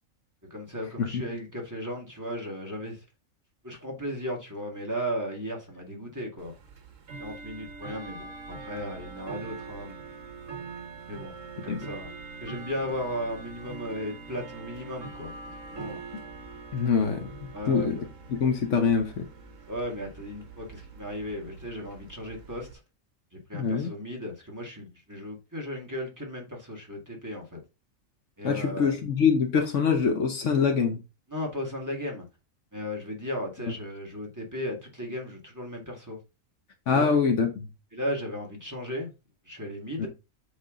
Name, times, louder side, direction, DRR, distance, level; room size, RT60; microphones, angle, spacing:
voice 1, 0.5-3.0 3.6-6.5 7.2-10.0 11.1-11.4 11.6-12.1 12.4-15.3 15.7-16.0 17.5-18.0 19.7-22.7 23.3-27.6 28.4-28.9 31.3-32.3 32.7-36.2 36.9-37.1 37.9-39.1 39.5-40.1, equal, 15° right, 1.9 m, -35 dB
Bell / Tick-tock, 6.4-22.7, right 4 dB, 65° right, 1.5 m, -43 dB
voice 2, 16.7-17.3 17.7-18.0 18.3-19.3 23.5-23.9 28.4-31.0 36.9-37.7 40.0-40.1, left 5 dB, 65° left, 1.2 m, -24 dB
8.2 x 3.5 x 3.7 m
omnidirectional pair, 1.4 m